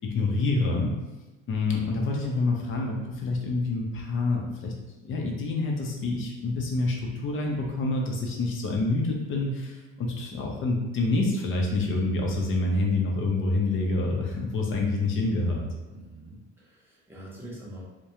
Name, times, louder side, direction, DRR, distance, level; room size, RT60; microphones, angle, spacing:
voice 1, 0.0-0.9 1.5-4.7 5.0-15.7, left 2 dB, 35° left, 0 dB, 0.6 m, -27 dB
voice 2, 15.9-17.8, right 1 dB, 5° right, -6 dB, 0.7 m, -44 dB
2.3 x 2.2 x 2.9 m, 1.1 s
supercardioid pair, 110°, 34 cm